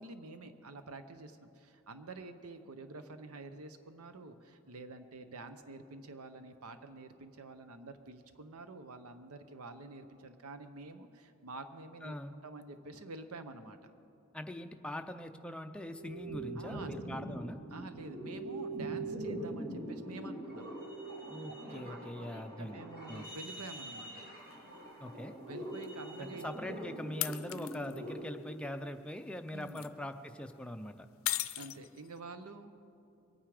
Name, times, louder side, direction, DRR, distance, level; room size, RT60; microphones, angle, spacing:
voice 1, 0.0-12.2 12.4-13.9 16.6-17.3 17.7-20.7 21.9-24.2 25.5-26.5 29.5-29.9 31.6-32.7, right 3 dB, 80° right, 9 dB, 0.8 m, -48 dB
voice 2, 12.0-12.3 14.3-17.6 21.3-22.8 23.1-23.3 25.0-25.3 26.2-31.1, left 1 dB, 5° left, 6 dB, 0.4 m, -42 dB
sound 1, 16.0-28.1, right 2 dB, 45° right, 4.3 m, -43 dB
sound 2, 24.5-24.6 25.8-25.9 27.2-28.0 29.5-29.9 31.3-32.2, left 15 dB, 65° left, 0.5 m, -37 dB
22.5 x 9.3 x 4.9 m, 2.6 s
head